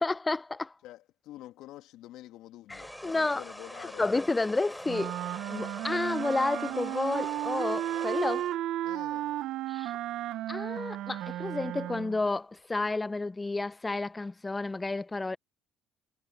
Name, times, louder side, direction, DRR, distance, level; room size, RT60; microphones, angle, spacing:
voice 1, 0.0-0.7 2.7-3.4 4.0-5.1 5.5-8.5 9.7-9.9 10.5-15.4, left 3 dB, 20° left, 0.3 m, -31 dB
voice 2, 0.8-4.1 8.8-9.6, left 15 dB, 75° left, 2.4 m, -48 dB
sound 1, 2.7-8.6, equal, 5° left, 4.0 m, -44 dB
sound 2, 4.9-12.2, right 14 dB, 70° right, 0.5 m, -34 dB
supercardioid pair, 65°, 0 cm